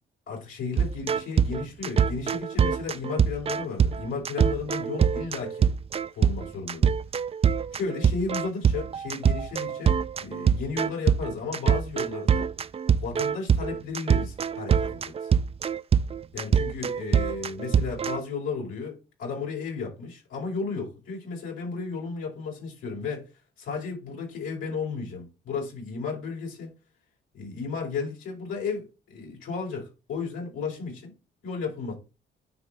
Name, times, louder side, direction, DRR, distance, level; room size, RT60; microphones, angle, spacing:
voice 1, 0.3-5.7 6.1-6.9 7.7-12.5 13.0-15.3 16.3-23.3 23.6-26.7 27.3-31.1 31.4-31.9, left 5 dB, 90° left, 5.0 m, -34 dB
sound 1, 0.8-18.2, right 7 dB, 30° right, 0.4 m, -24 dB
9.7 x 3.3 x 5.8 m
cardioid pair, 90°, 20 cm